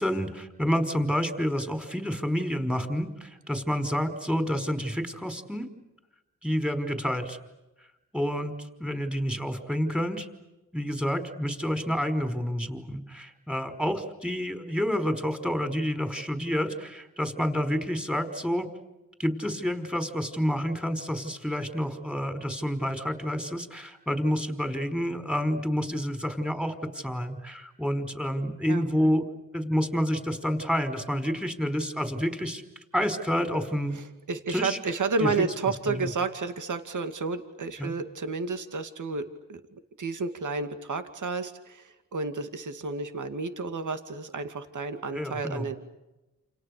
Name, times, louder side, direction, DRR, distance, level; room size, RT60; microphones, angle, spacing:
voice 1, 0.0-5.7 6.4-7.4 7.8-7.9 8.1-10.3 10.7-18.7 19.2-29.2 29.5-32.6 32.9-34.0 34.5-34.8 35.2-35.3 35.9-36.1 37.8-37.9 45.1-45.7, equal, 5° right, 8 dB, 5.0 m, -29 dB
voice 2, 33.9-39.6 40.0-45.7, right 4 dB, 65° right, 8 dB, 2.4 m, -31 dB
29.5 x 29.0 x 6.8 m, 1.0 s
cardioid pair, 65°, 32 cm